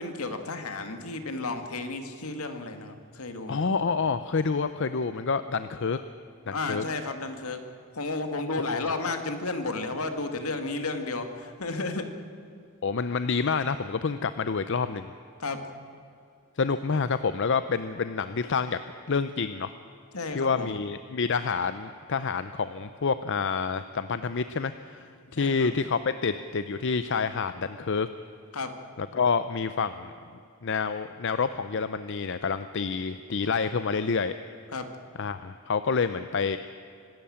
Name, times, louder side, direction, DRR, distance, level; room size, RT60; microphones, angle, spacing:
voice 1, 0.0-3.7 6.5-7.6 7.9-12.1 15.4-15.6 20.1-20.8 25.3-25.7 28.5-28.7 34.7-34.9, left 3 dB, 75° left, 7 dB, 2.1 m, -32 dB
voice 2, 3.5-6.0 6.5-6.8 8.5-8.8 12.8-15.1 16.6-18.8 19.1-19.7 20.3-28.1 29.0-30.1 30.6-34.3 35.2-36.6, left 5 dB, 55° left, 11 dB, 0.6 m, -28 dB
25.0 x 13.0 x 8.7 m, 2.5 s
head